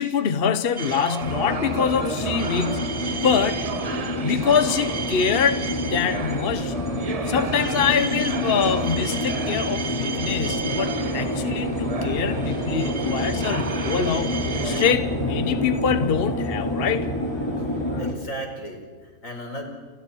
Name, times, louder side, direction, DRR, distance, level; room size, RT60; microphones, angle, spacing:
voice 1, 0.0-2.9 3.2-3.6 4.2-6.8 7.2-17.1 17.6-17.7, left 7 dB, 50° left, 1.1 m, -24 dB
sound 1, 0.8-14.9, right 5 dB, 35° right, 0.8 m, -32 dB
sound 2, 1.2-18.1, left 1 dB, 20° left, 4.9 m, -28 dB
voice 2, 17.7-19.6, right 1 dB, 85° left, 5.5 m, -36 dB
30.0 x 29.5 x 4.5 m
omnidirectional pair, 1.4 m